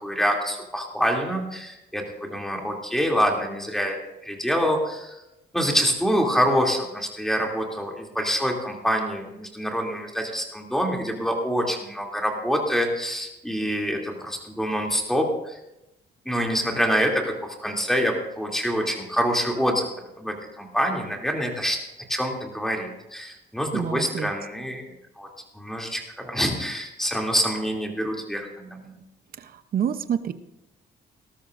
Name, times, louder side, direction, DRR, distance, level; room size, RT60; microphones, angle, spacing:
voice 1, 0.0-5.2 5.5-15.6 16.2-19.9 20.2-21.8 22.1-24.8 25.2-25.3 25.5-28.9, equal, ahead, 0 dB, 2.8 m, -26 dB
voice 2, 23.7-24.3 29.4-30.3, right 8 dB, 55° right, 11 dB, 0.8 m, -28 dB
19.0 x 12.5 x 2.6 m, 0.91 s
cardioid pair, 100°, 18 cm